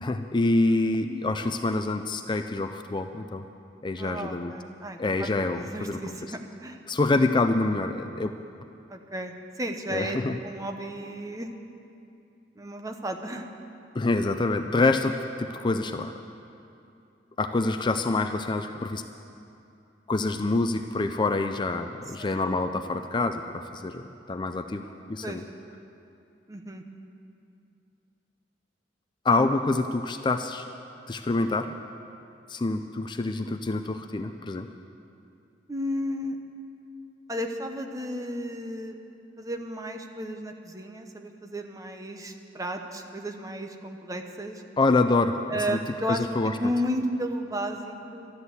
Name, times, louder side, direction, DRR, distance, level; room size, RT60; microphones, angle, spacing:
voice 1, 0.0-3.4 3.8-4.5 5.0-6.1 6.9-8.3 9.9-10.4 13.9-16.1 17.4-19.0 20.1-23.4 23.7-25.4 29.2-30.6 31.1-31.7 32.5-34.7 44.8-45.8 46.1-46.5, left 2 dB, 25° left, 7 dB, 0.4 m, -26 dB
voice 2, 4.0-5.3 5.6-6.8 8.9-10.2 10.4-11.5 12.6-13.5 22.2-22.4 25.2-25.4 26.5-26.8 35.7-36.4 37.3-39.0 39.4-44.6 45.5-46.3 46.6-48.3, equal, 20° right, 4 dB, 0.9 m, -33 dB
13.0 x 10.5 x 8.0 m, 2.6 s
head